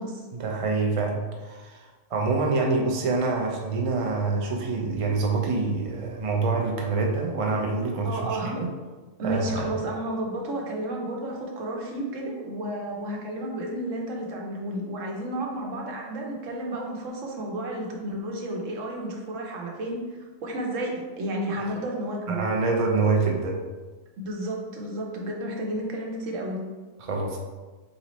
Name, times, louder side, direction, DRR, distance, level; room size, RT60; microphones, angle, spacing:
voice 1, 0.3-8.2 8.4-8.7 9.2-9.6 22.3-23.6 27.0-27.4, right 3 dB, 50° right, 1 dB, 0.4 m, -26 dB
voice 2, 8.0-8.5 9.2-20.0 20.4-22.4 24.2-26.6, right 1 dB, 70° right, 0 dB, 1.1 m, -32 dB
4.0 x 3.9 x 3.0 m, 1.3 s
omnidirectional pair, 1.4 m